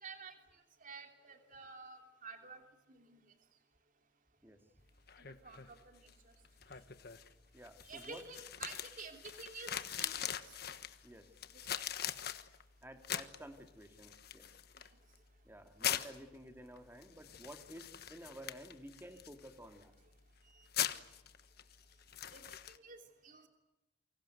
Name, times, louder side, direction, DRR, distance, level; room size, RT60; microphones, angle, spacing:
voice 1, 0.0-0.3 0.8-2.6 2.9-3.2 5.2-6.3 7.8-10.4 11.7-11.8 20.4-20.7 22.3-23.5, right 4 dB, 45° right, 5 dB, 3.1 m, -51 dB
sound 1, 4.8-22.8, left 10 dB, 55° left, 1.3 m, -44 dB
voice 2, 7.5-8.2 11.0-11.3 12.8-14.5 15.4-19.9, right 1 dB, 10° right, 6 dB, 2.6 m, -53 dB
28.5 x 25.0 x 8.0 m, 0.94 s
head